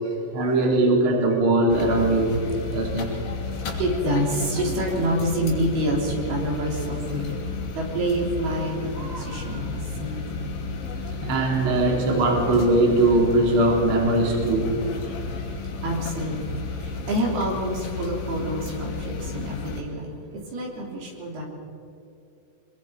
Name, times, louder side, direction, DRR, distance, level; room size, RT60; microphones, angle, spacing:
voice 1, 0.3-3.2 11.2-14.8, right 2 dB, 35° right, 0 dB, 3.3 m, -21 dB
sound 1, 1.7-19.8, left 4 dB, 60° left, 4.8 m, -33 dB
voice 2, 3.8-7.4 7.8-10.5 15.8-21.4, right 1 dB, 65° right, -1 dB, 5.2 m, -27 dB
25.0 x 23.5 x 5.2 m, 2.7 s
omnidirectional pair, 5.0 m